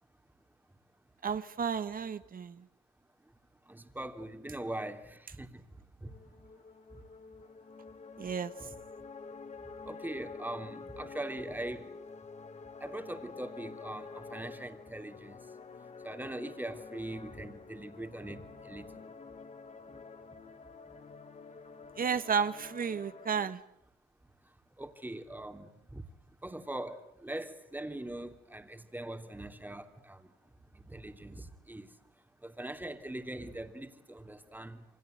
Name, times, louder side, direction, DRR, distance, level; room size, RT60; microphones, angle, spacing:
voice 1, 1.2-2.6 8.2-8.5 22.0-23.6, right 6 dB, 45° right, 1.5 m, -32 dB
voice 2, 3.7-5.6 6.0-6.4 6.9-7.0 8.6-8.7 9.8-12.0 12.8-15.5 16.0-19.1 19.9-20.0 24.4-24.5 24.8-26.0 26.4-30.3 30.7-32.0 32.4-34.8, right 1 dB, 10° right, 3.0 m, -42 dB
sound 1, 6.1-23.5, left 4 dB, 35° left, 1.8 m, -48 dB
28.5 x 25.0 x 8.0 m
cardioid pair, 90°, 20 cm